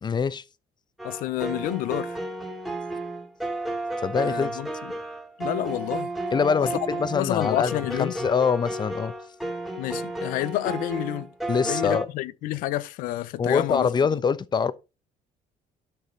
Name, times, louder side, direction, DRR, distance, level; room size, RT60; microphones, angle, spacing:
voice 1, 0.0-0.4 4.0-4.5 6.3-9.1 11.5-12.1 13.4-14.7, left 6 dB, 30° left, 0.8 m, -24 dB
voice 2, 1.0-2.2 4.2-4.9 5.4-6.1 6.6-6.7 7.1-8.1 9.8-13.9, left 15 dB, 90° left, 0.7 m, -29 dB
sound 1, 1.0-12.0, right 2 dB, ahead, 2.1 m, -32 dB
12.0 x 6.3 x 4.0 m
cardioid pair, 115°, 14 cm